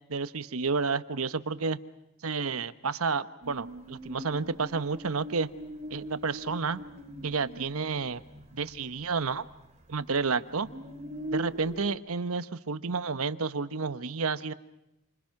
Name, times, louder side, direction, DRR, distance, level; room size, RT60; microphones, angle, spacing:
voice 1, 0.1-1.8 2.2-5.5 5.9-6.8 7.2-8.2 8.5-9.5 9.9-10.7 11.3-14.5, right 4 dB, 85° right, 13 dB, 1.0 m, -30 dB
sound 1, 3.4-9.6 9.9-11.9, right 1 dB, 30° right, 2.4 m, -42 dB
28.0 x 26.0 x 5.9 m, 0.88 s
head